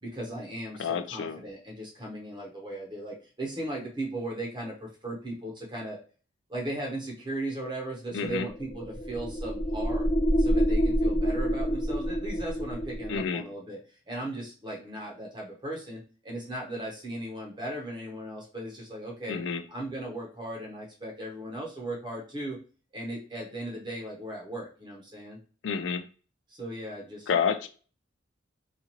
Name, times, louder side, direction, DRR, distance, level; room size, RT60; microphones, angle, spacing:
voice 1, 0.0-6.0 6.5-10.1 10.4-13.8 14.1-19.4 19.7-22.6 22.9-25.4 26.5-27.3, right 1 dB, 25° right, -2 dB, 0.8 m, -37 dB
voice 2, 0.8-1.4 8.1-8.5 13.1-13.4 19.3-19.6 25.6-26.0 27.3-27.7, left 6 dB, 85° left, 9 dB, 0.4 m, -29 dB
sound 1, 8.3-13.3, equal, 30° left, 0.8 m, -27 dB
4.0 x 2.5 x 2.9 m, 0.38 s
head